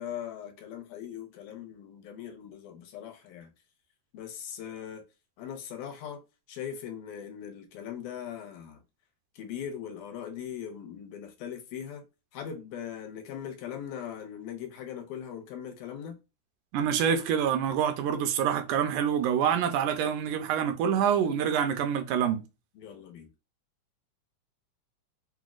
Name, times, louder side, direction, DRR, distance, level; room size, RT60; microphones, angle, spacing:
voice 1, 0.0-3.5 4.1-5.0 5.4-6.2 6.5-8.8 9.4-12.0 12.3-16.2 22.8-23.3, left 9 dB, 80° left, 2.0 m, -40 dB
voice 2, 16.7-22.4, right 8 dB, 80° right, 2.0 m, -26 dB
6.1 x 2.1 x 2.4 m
omnidirectional pair, 3.6 m